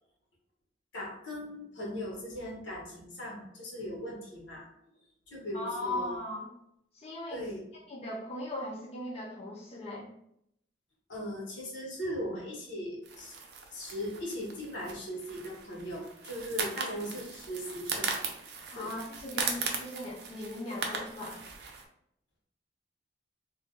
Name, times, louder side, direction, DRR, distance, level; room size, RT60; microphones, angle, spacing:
voice 1, 0.9-4.7 5.3-6.2 7.3-7.6 11.1-13.4 13.7-18.2 18.7-18.9, equal, 75° left, -3 dB, 1.1 m, -38 dB
voice 2, 5.5-6.5 6.9-7.4 7.9-10.1 18.7-21.4, left 1 dB, 30° left, -5 dB, 0.5 m, -38 dB
sound 1, 13.0-21.8, right 5 dB, 60° right, 0.5 m, -38 dB
2.5 x 2.2 x 3.6 m, 0.75 s
head